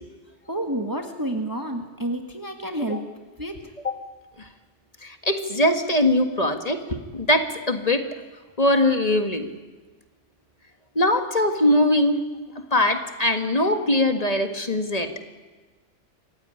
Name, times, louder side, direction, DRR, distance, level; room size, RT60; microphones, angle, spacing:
voice 1, 0.5-3.0 3.4-3.6, right 1 dB, 15° right, 4 dB, 1.6 m, -29 dB
voice 2, 5.0-8.0 8.6-9.5 11.0-12.2 12.7-15.1, left 1 dB, 30° left, 6 dB, 1.8 m, -21 dB
25.5 x 15.5 x 9.8 m, 1.3 s
omnidirectional pair, 1.3 m